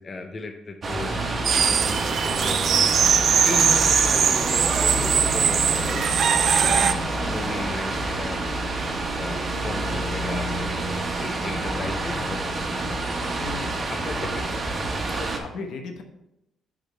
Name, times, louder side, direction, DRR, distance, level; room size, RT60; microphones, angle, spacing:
voice 1, 0.0-2.9 3.4-6.0 6.6-8.4 9.2-10.8 11.2-13.1 13.9-14.6, left 3 dB, 40° left, 5 dB, 0.6 m, -36 dB
sound 1, 0.8-15.4, right 2 dB, 35° right, 1.4 m, -28 dB
sound 2, 1.4-6.9, right 7 dB, 60° right, 0.5 m, -21 dB
voice 2, 13.4-13.7 14.9-16.0, left 4 dB, 75° left, 5 dB, 1.0 m, -37 dB
8.8 x 5.0 x 3.3 m, 0.86 s
cardioid pair, 90°, 0 cm